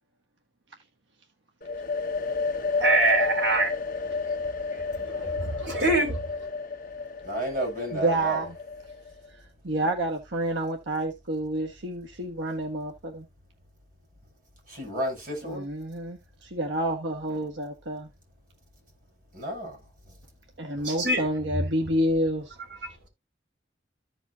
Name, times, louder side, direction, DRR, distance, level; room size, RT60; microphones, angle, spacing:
sound 1, 1.6-9.3, left 4 dB, 45° left, 1.4 m, -31 dB
voice 1, 2.8-3.7 5.1-6.2 20.8-21.2, right 2 dB, 60° right, 4.3 m, -24 dB
voice 2, 7.2-8.4 14.7-15.7 19.3-19.8, right 1 dB, 45° right, 7.0 m, -31 dB
voice 3, 7.9-8.6 9.6-13.2 15.4-18.1 20.6-22.5, right 1 dB, 80° right, 1.5 m, -29 dB
15.0 x 5.1 x 2.7 m
head